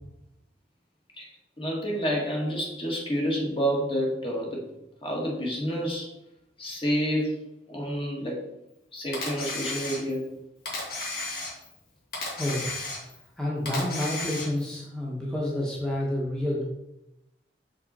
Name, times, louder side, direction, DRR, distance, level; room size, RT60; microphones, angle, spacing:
voice 1, 1.6-4.6 5.0-6.1 6.6-7.4 7.7-8.4 8.9-10.3, equal, 30° left, -1 dB, 1.6 m, -29 dB
Camera, 9.1-10.3 10.7-11.8 12.1-13.3 13.7-14.7, left 2 dB, 55° left, 2.3 m, -34 dB
voice 2, 13.4-16.6, left 1 dB, 5° left, -5 dB, 1.1 m, -29 dB
6.3 x 5.5 x 4.2 m, 0.89 s
head